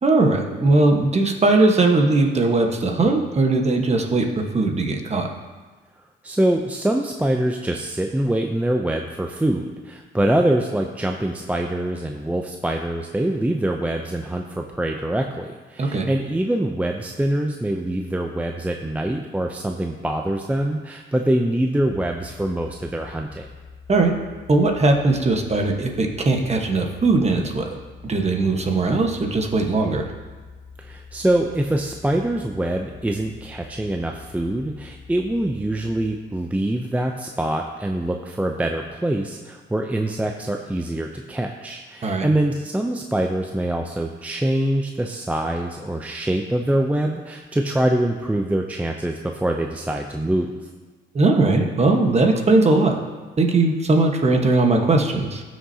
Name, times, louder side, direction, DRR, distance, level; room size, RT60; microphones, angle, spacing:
voice 1, 0.0-5.3 15.8-16.1 23.9-24.1 24.5-27.7 28.0-30.1 42.0-42.3 51.1-52.9 53.4-55.4, right 3 dB, 35° right, 2 dB, 1.3 m, -19 dB
voice 2, 6.2-23.5 30.8-50.5, right 1 dB, 5° right, 2 dB, 0.5 m, -24 dB
sound 1, 21.8-36.2, left 5 dB, 30° left, 1.2 m, -44 dB
15.5 x 6.3 x 2.8 m, 1.4 s
cardioid pair, 90°, 20 cm